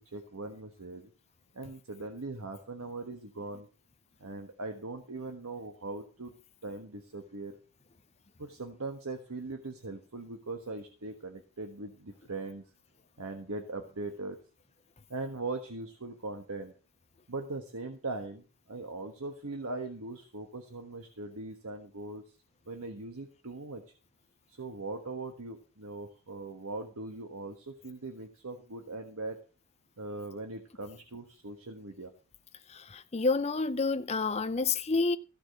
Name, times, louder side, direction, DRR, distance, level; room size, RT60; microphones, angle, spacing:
voice 1, 0.1-1.1 1.5-3.7 4.2-6.3 6.6-7.6 8.4-12.6 13.2-14.4 15.1-16.7 17.3-22.3 22.7-23.8 24.5-29.4 30.0-32.1, right 2 dB, 75° right, 1.4 m, -40 dB
voice 2, 32.7-35.2, left 4 dB, 30° left, 0.6 m, -29 dB
15.0 x 5.0 x 7.7 m
head